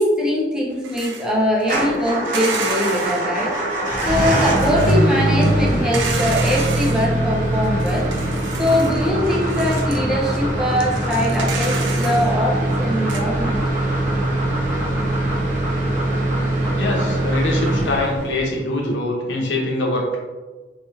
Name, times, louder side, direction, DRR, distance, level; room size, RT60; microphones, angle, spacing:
voice 1, 0.0-3.5 4.0-8.1 8.5-13.6, equal, 5° right, -4 dB, 0.5 m, -22 dB
sound 1, 0.8-1.3 1.7-3.3 4.0-5.0 5.4-7.1 7.6-10.0 10.3-10.4 10.7-12.3 12.8-12.9 13.1-13.2, right 4 dB, 85° right, 0.5 m, -31 dB
Motor vehicle (road) / Engine starting / Idling, 1.6-18.6, right 1 dB, 45° right, 0.6 m, -22 dB
sound 2, 8.7-18.2, equal, 25° right, 1.3 m, -32 dB
voice 2, 16.8-20.2, left 1 dB, 90° left, -2 dB, 0.7 m, -23 dB
3.1 x 2.9 x 2.2 m, 1.3 s
head